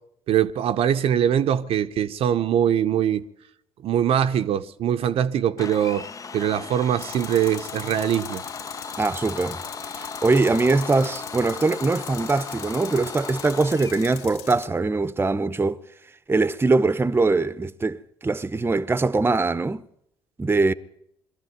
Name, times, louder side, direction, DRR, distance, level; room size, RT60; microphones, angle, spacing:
voice 1, 0.3-3.3 3.8-6.1 6.3-8.4, right 9 dB, 55° right, 0.8 m, -22 dB
Domestic sounds home sounds, 5.6-14.2, left 5 dB, 30° left, 0.7 m, -37 dB
Tools, 7.0-14.7, left 11 dB, 70° left, 0.8 m, -41 dB
voice 2, 9.0-9.6 10.0-15.8 16.3-19.8 20.4-20.7, right 3 dB, 20° right, 0.9 m, -22 dB
22.5 x 13.5 x 9.4 m
hypercardioid pair, 55°, 12 cm